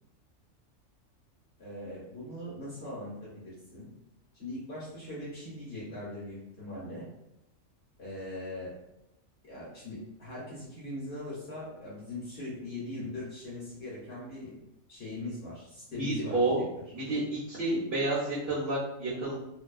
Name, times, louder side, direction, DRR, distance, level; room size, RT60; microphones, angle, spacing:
voice 1, 1.6-3.9 4.3-7.1 8.0-8.7 9.4-14.6 14.9-16.6, left 1 dB, 55° left, -8 dB, 0.9 m, -40 dB
voice 2, 16.0-16.6 16.9-17.2 17.5-19.3, right 2 dB, 55° right, -8 dB, 1.0 m, -29 dB
2.6 x 2.2 x 2.3 m, 0.86 s
omnidirectional pair, 1.4 m